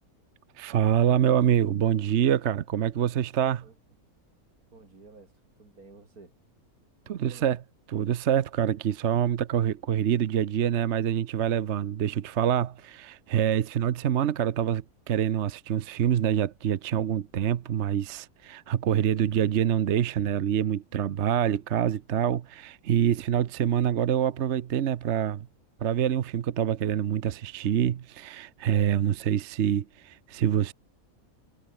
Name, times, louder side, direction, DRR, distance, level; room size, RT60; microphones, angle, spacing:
voice 1, 0.6-3.7 7.1-7.6 7.9-25.5 25.8-30.7, right 10 dB, 55° right, 1.0 m, -26 dB
voice 2, 4.7-5.3 5.6-6.3 7.0-7.5 23.1-23.5, right 3 dB, 80° right, 3.9 m, -52 dB
omnidirectional pair, 1.5 m